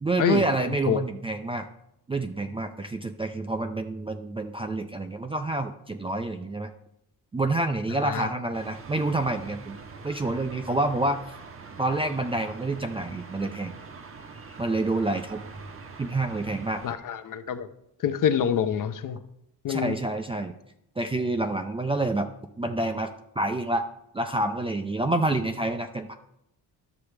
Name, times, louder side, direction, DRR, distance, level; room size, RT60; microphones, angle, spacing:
voice 1, 0.0-1.7 2.1-6.7 7.3-9.8 10.0-11.2 11.8-13.8 14.6-15.4 16.0-16.8 19.7-20.5 21.0-22.3 22.6-23.8 24.1-26.1, right 2 dB, 15° right, 6 dB, 0.4 m, -28 dB
sound 1, 8.5-16.9, right 4 dB, 35° right, 0.8 m, -44 dB
voice 2, 16.8-17.7 18.0-19.2 19.6-20.0, left 8 dB, 50° left, 10 dB, 0.7 m, -26 dB
11.5 x 6.9 x 3.3 m, 0.78 s
cardioid pair, 135°, 40 cm